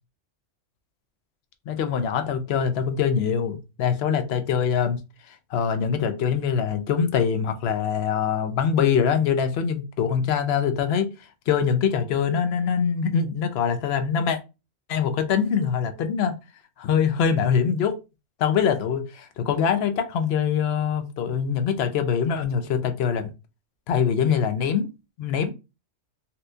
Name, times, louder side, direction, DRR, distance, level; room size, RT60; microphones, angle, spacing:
voice 1, 1.7-5.0 5.3-11.1 11.5-14.4 14.9-16.3 16.8-18.0 18.4-23.3 23.9-24.9 25.2-25.5, left 7 dB, 65° left, 0.7 m, -23 dB
4.2 x 2.2 x 2.6 m
omnidirectional pair, 1.3 m